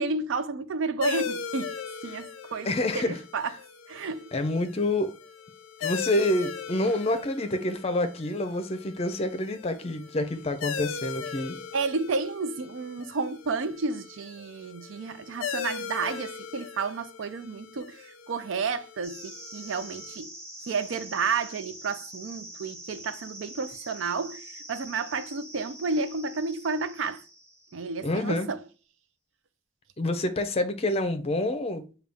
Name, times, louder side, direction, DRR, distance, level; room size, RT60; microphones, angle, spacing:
voice 1, 0.0-1.8 2.0-2.7 2.9-3.5 3.9-4.3 11.7-20.3 20.7-27.2 27.7-28.6, right 4 dB, 80° right, 0.5 m, -31 dB
sound 1, 1.0-20.2, left 7 dB, 90° left, 0.4 m, -39 dB
voice 2, 2.6-3.2 4.3-5.1 5.8-11.6 28.0-28.5 30.0-31.8, left 1 dB, 30° left, 0.5 m, -27 dB
sound 2, 19.0-28.2, right 1 dB, 15° right, 0.7 m, -45 dB
6.6 x 2.3 x 3.4 m
head